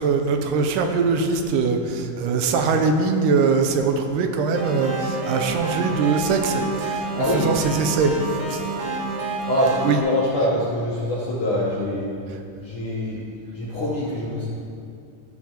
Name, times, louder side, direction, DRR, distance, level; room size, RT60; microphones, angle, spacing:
voice 1, 0.0-8.2 8.5-8.6 9.8-10.0, right 4 dB, 80° right, 5 dB, 2.2 m, -22 dB
sound 1, 4.5-10.0, right 3 dB, 60° right, 1.2 m, -29 dB
voice 2, 7.2-7.5 9.5-12.1 12.6-13.3 13.5-14.5, left 1 dB, 65° left, -7 dB, 1.3 m, -24 dB
12.0 x 8.2 x 2.9 m, 2.4 s
omnidirectional pair, 3.8 m